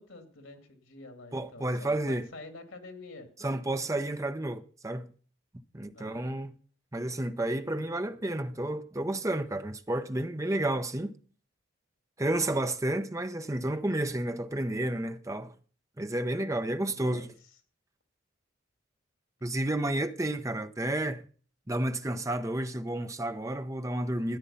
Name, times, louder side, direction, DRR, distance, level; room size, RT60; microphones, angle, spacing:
voice 1, 0.0-3.3 5.9-6.3 16.5-17.3, left 2 dB, 90° left, 2.5 m, -48 dB
voice 2, 1.3-2.3 3.4-5.1 5.7-6.5 6.9-11.1 12.2-15.5 16.0-17.3 19.4-21.3 21.7-24.4, right 1 dB, 15° right, 0.7 m, -31 dB
14.0 x 9.8 x 5.6 m
head